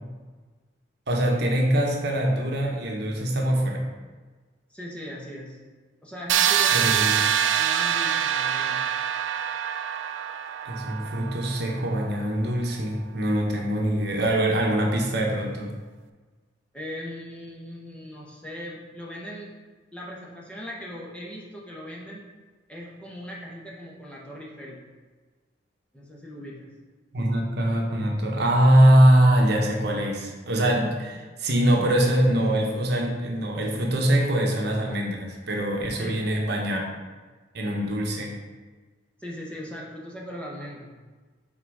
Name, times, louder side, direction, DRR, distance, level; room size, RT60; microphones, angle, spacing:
voice 1, 1.1-3.8 6.7-7.2 10.6-15.7 27.1-36.8 37.5-38.3, right 1 dB, 60° right, 0 dB, 1.0 m, -23 dB
voice 2, 4.7-5.6 6.0-7.0 7.5-9.0 16.7-19.5 19.9-22.2 22.7-24.8 25.9-26.7 36.0-36.2 39.2-40.9, equal, 5° left, -4 dB, 1.0 m, -39 dB
sound 1, 6.3-12.1, right 9 dB, 85° right, 0.4 m, -25 dB
5.7 x 4.1 x 4.7 m, 1.3 s
head